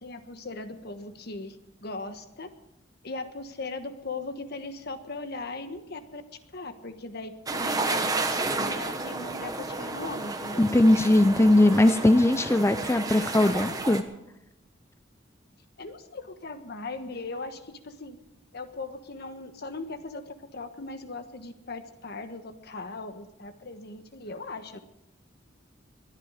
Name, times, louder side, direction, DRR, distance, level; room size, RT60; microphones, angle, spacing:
voice 1, 0.0-2.5 3.0-6.2 6.5-10.6 15.8-18.2 18.5-24.8, left 3 dB, 55° left, 9 dB, 1.3 m, -39 dB
sound 1, 7.5-14.0, right 3 dB, 20° right, 1.2 m, -31 dB
voice 2, 10.6-14.0, left 1 dB, 15° left, 10 dB, 0.5 m, -20 dB
21.0 x 10.5 x 5.0 m, 0.88 s
head